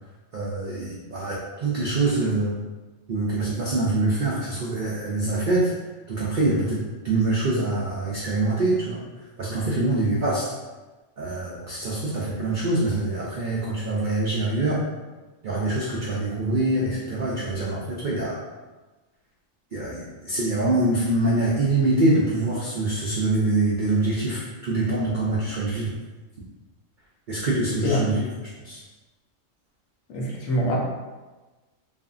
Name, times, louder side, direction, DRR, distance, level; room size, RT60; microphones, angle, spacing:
voice 1, 0.3-2.6 3.1-5.7 6.1-9.0 9.4-10.4 11.2-14.8 15.4-18.4 19.7-25.9 27.3-28.3 28.6-28.8, right 2 dB, 80° right, -5 dB, 0.4 m, -24 dB
voice 2, 30.1-30.8, equal, 75° left, -3 dB, 1.0 m, -24 dB
3.3 x 2.0 x 2.4 m, 1.2 s
omnidirectional pair, 1.4 m